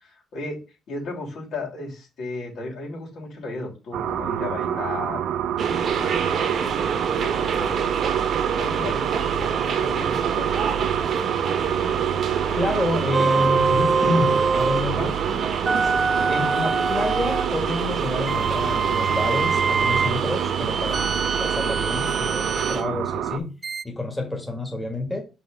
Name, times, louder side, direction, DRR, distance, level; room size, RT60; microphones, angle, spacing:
voice 1, 0.0-5.2 5.8-8.0 8.6-10.9, left 2 dB, 75° left, -2 dB, 3.0 m, -35 dB
sound 1, 3.9-23.4, right 10 dB, 80° right, 0.6 m, -27 dB
sound 2, 5.6-22.8, right 6 dB, 60° right, 1.0 m, -28 dB
voice 2, 12.6-15.9 16.3-23.5 23.8-25.2, left 2 dB, 15° left, 1 dB, 1.8 m, -29 dB
sound 3, 13.1-14.9 15.7-17.5 18.3-20.2 20.9-22.8 23.6-23.8, right 4 dB, 35° right, 0.3 m, -24 dB
5.5 x 3.4 x 4.9 m, 0.30 s
cardioid pair, 90°, 0 cm